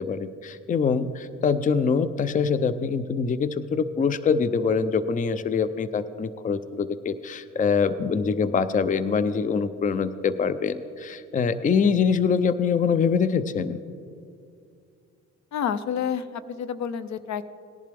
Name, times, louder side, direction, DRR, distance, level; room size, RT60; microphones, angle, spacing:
voice 1, 0.0-13.8, left 5 dB, 25° left, 13 dB, 0.5 m, -24 dB
voice 2, 15.5-17.5, left 8 dB, 65° left, 14 dB, 0.6 m, -29 dB
18.5 x 11.0 x 3.4 m, 2.4 s
cardioid pair, 90°, 30 cm